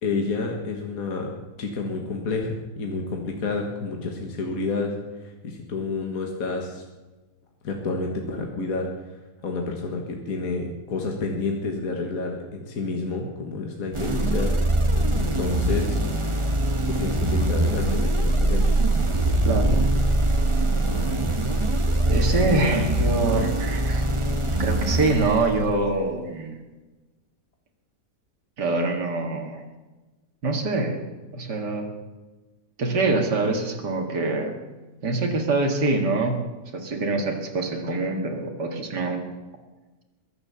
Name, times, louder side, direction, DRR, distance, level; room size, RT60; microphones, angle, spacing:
voice 1, 0.0-1.3 1.6-6.8 7.6-8.9 9.4-14.6 15.1-16.0 16.9-18.7, left 3 dB, 55° left, 1 dB, 2.0 m, -29 dB
sound 1, 13.9-25.9, right 1 dB, 20° right, 1.0 m, -23 dB
voice 2, 22.0-24.1 24.6-26.6 28.6-29.6 30.4-31.0 31.3-31.9 32.8-34.5 35.0-36.4 36.7-39.2, right 3 dB, 75° right, 2 dB, 2.7 m, -25 dB
22.0 x 8.2 x 7.0 m, 1.2 s
omnidirectional pair, 1.8 m